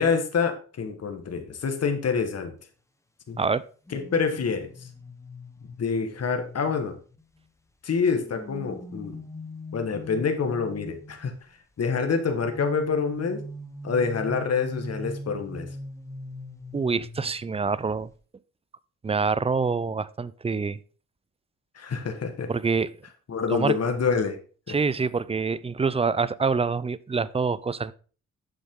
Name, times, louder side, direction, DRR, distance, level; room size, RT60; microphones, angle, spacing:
voice 1, 0.0-2.5 3.3-3.4 3.9-4.7 5.8-7.0 7.8-9.2 9.7-11.3 11.8-13.4 13.8-15.7 21.7-22.5 23.3-24.4 24.7-24.8, left 5 dB, 55° left, 6 dB, 1.5 m, -26 dB
sound 1, 3.9-7.5 8.1-11.3 12.4-17.6 17.9-18.1, equal, 10° left, 1.1 m, -41 dB
voice 2, 16.7-18.1 19.0-20.8 22.5-22.9 23.5-23.7 24.7-27.9, right 4 dB, 20° right, 18 dB, 0.4 m, -26 dB
7.2 x 7.1 x 3.7 m, 0.39 s
cardioid pair, 80°, 29 cm